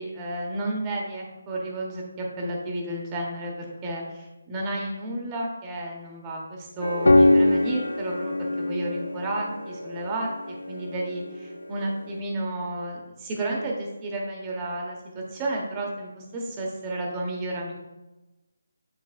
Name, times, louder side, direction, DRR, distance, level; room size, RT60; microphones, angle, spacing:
voice 1, 0.0-17.7, right 1 dB, 20° right, -1 dB, 1.3 m, -32 dB
a soothing song, 6.8-11.8, left 2 dB, 85° left, 0.6 m, -23 dB
9.7 x 4.0 x 2.5 m, 1.1 s
figure-of-eight pair, 155°, 0 cm